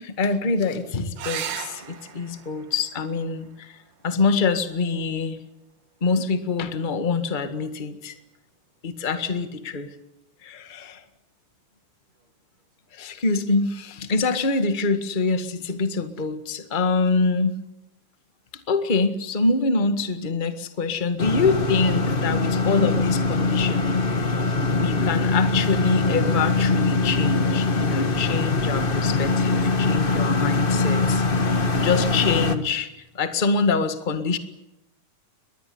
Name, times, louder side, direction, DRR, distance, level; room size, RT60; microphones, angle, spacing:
voice 1, 0.0-3.8 4.0-5.4 6.0-8.2 8.8-9.9 10.4-11.0 12.9-17.6 18.5-24.0 24.7-32.9 33.1-34.4, left 4 dB, 20° left, 9 dB, 1.3 m, -25 dB
sound 1, 1.2-6.2 8.1-8.7 12.2-12.3 12.6-12.7, right 8 dB, 80° right, 3.3 m, -39 dB
sound 2, 21.2-32.6, left 3 dB, 45° left, 0.6 m, -22 dB
23.0 x 20.0 x 9.5 m, 0.89 s
omnidirectional pair, 3.6 m